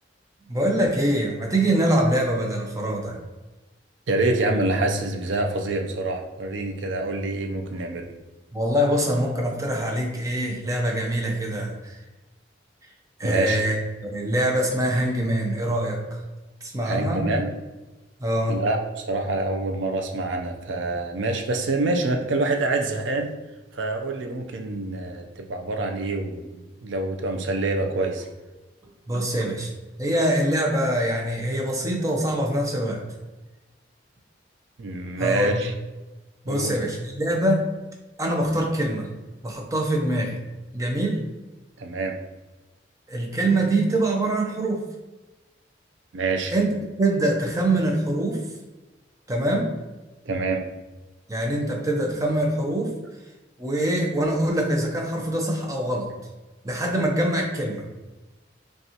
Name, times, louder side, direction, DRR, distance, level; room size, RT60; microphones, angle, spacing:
voice 1, 0.5-3.2 8.5-12.0 13.2-16.0 16.6-17.3 18.2-18.6 29.1-29.7 30.0-33.0 35.2-35.6 36.5-37.7 38.2-39.1 39.4-40.4 40.7-41.2 43.1-44.8 46.5-46.7 47.0-48.4 49.3-49.7 51.3-52.9 53.6-56.1 56.6-57.8, right 1 dB, 20° right, 0 dB, 0.5 m, -24 dB
voice 2, 4.1-8.1 13.2-13.6 16.8-17.5 18.5-23.3 23.7-28.3 29.1-29.3 34.8-35.7 36.5-36.7 41.8-42.2 46.1-46.5 50.3-50.6, right 2 dB, 75° right, 4 dB, 0.5 m, -26 dB
5.3 x 2.4 x 2.8 m, 1.1 s
head